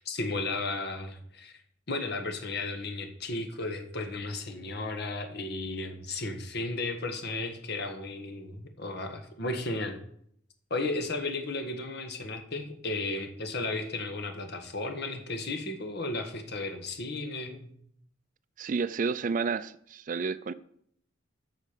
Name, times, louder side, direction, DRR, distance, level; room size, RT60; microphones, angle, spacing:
voice 1, 0.0-1.5 1.9-10.0 10.7-17.7, left 2 dB, 55° left, 6 dB, 1.5 m, -34 dB
voice 2, 18.6-20.5, right 5 dB, 40° right, 15 dB, 0.4 m, -30 dB
8.4 x 6.5 x 6.8 m, 0.67 s
head